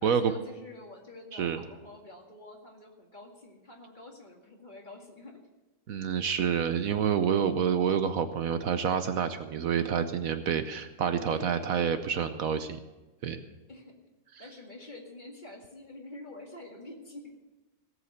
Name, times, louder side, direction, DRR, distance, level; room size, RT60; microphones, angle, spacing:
voice 1, 0.0-5.4 11.2-12.1 13.7-13.9 14.4-17.4, left 2 dB, 30° left, 0 dB, 2.2 m, -47 dB
voice 2, 5.9-12.8 13.2-13.4, right 7 dB, 65° right, 10 dB, 1.1 m, -28 dB
17.5 x 7.9 x 6.5 m, 1.1 s
omnidirectional pair, 1.6 m